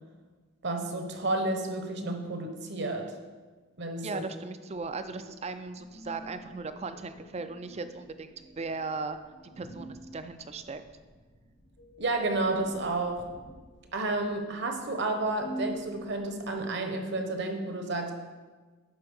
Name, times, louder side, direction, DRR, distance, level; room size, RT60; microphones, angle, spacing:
voice 1, 0.6-3.1 3.8-4.2 12.0-13.2 13.9-18.1, right 2 dB, 55° right, 5 dB, 1.0 m, -31 dB
voice 2, 4.0-9.2 9.4-10.8, right 3 dB, 30° right, 10 dB, 0.4 m, -37 dB
sound 1, 4.7-16.6, right 1 dB, 65° left, 1.4 m, -47 dB
11.5 x 4.3 x 5.4 m, 1.4 s
head